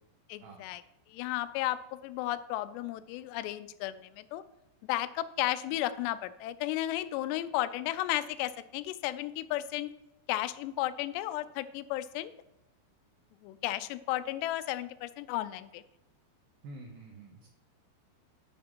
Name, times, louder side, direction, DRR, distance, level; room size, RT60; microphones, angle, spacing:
voice 1, 0.3-0.8 1.1-4.4 4.9-9.9 10.3-12.3 13.4-15.8, left 14 dB, 85° left, 14 dB, 2.7 m, -34 dB
voice 2, 16.6-17.5, right 2 dB, 75° right, 0 dB, 2.4 m, -48 dB
11.0 x 5.8 x 4.5 m, 0.93 s
omnidirectional pair, 5.0 m